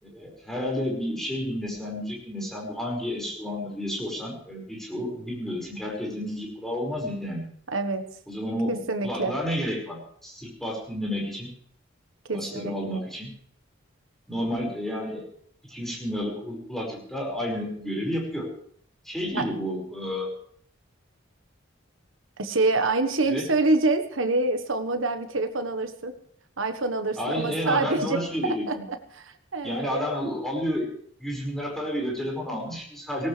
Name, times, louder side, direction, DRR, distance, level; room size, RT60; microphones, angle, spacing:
voice 1, 0.0-7.4 8.3-8.8 9.0-11.5 12.3-13.3 14.3-15.2 15.7-18.5 19.0-20.3 23.3-23.4 27.2-28.6 29.6-30.9 31.2-33.3, equal, ahead, -2 dB, 5.4 m, -31 dB
voice 2, 7.7-8.1 8.7-9.4 12.3-13.0 19.3-19.5 22.4-26.2 26.6-30.1, right 3 dB, 75° right, 8 dB, 1.4 m, -26 dB
18.5 x 18.0 x 3.4 m, 0.62 s
head